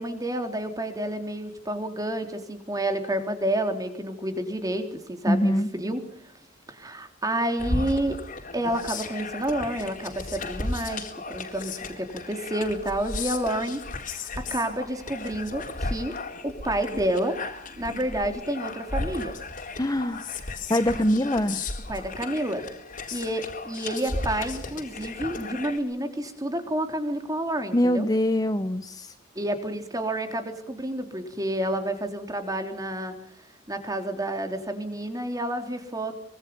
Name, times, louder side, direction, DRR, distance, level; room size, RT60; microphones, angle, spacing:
voice 1, 0.0-6.3 6.7-8.2 8.5-16.1 16.4-17.4 17.8-19.3 21.9-22.7 23.1-28.1 29.4-33.1 33.7-36.1, right 1 dB, 20° right, 6 dB, 3.5 m, -29 dB
voice 2, 5.3-5.7 19.8-20.3 20.7-21.6 27.7-29.1, left 1 dB, 20° left, 10 dB, 0.9 m, -23 dB
sound 1, 7.6-25.8, left 3 dB, 45° left, 4.1 m, -35 dB
25.0 x 24.0 x 5.4 m, 0.67 s
head